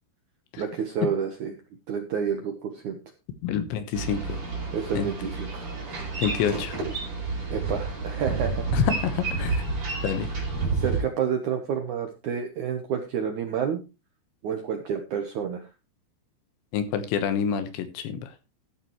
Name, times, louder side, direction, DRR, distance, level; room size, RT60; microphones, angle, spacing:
voice 1, 0.6-1.6 1.9-3.0 4.7-5.7 7.5-8.7 10.7-13.8 14.4-15.7, right 7 dB, 80° right, 5 dB, 1.7 m, -29 dB
voice 2, 3.4-4.4 4.9-5.1 6.2-6.8 8.7-9.6 10.0-10.3 16.7-18.3, left 8 dB, 80° left, 10 dB, 3.4 m, -27 dB
Boat Water vehicle, 3.9-11.0, right 4 dB, 30° right, 5.1 m, -30 dB
15.0 x 9.8 x 3.1 m, 0.28 s
omnidirectional pair, 5.3 m